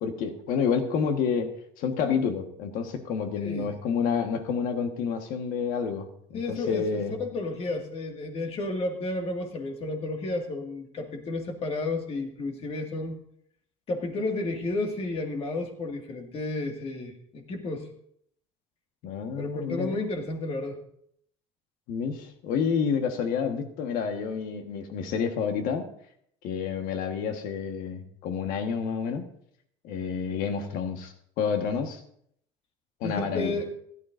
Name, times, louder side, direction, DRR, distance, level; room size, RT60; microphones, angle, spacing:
voice 1, 0.0-1.5 1.8-7.1 19.0-20.0 21.9-25.8 26.4-29.3 29.8-32.0 33.0-33.5, left 6 dB, 70° left, 6 dB, 1.5 m, -29 dB
voice 2, 3.4-3.7 6.3-13.2 13.9-17.9 19.4-20.8 33.0-33.7, left 2 dB, 40° left, 3 dB, 2.0 m, -32 dB
16.5 x 11.5 x 2.6 m, 0.69 s
supercardioid pair, 110°, 15 cm